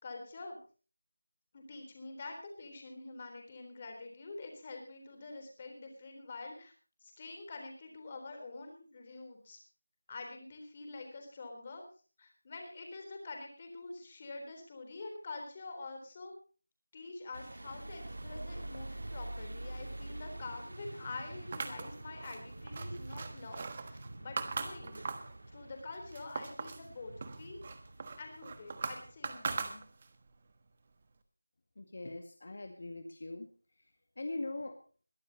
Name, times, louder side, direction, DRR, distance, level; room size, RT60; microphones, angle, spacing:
voice 1, 0.0-0.6 1.5-6.7 7.0-9.6 10.1-11.8 12.2-16.3 16.9-25.0 25.5-27.6 28.2-29.8, left 3 dB, 20° left, 4 dB, 3.8 m, -46 dB
sound 1, 17.3-29.1, right 1 dB, 60° right, 1.8 m, -46 dB
sound 2, 21.5-25.4 25.8-26.9 27.2-30.2, right 4 dB, 25° right, 1.3 m, -40 dB
voice 2, 31.8-33.5 34.2-34.8, left 2 dB, 50° left, 5 dB, 1.9 m, -41 dB
22.0 x 13.0 x 2.9 m, 0.37 s
figure-of-eight pair, 175°, 0 cm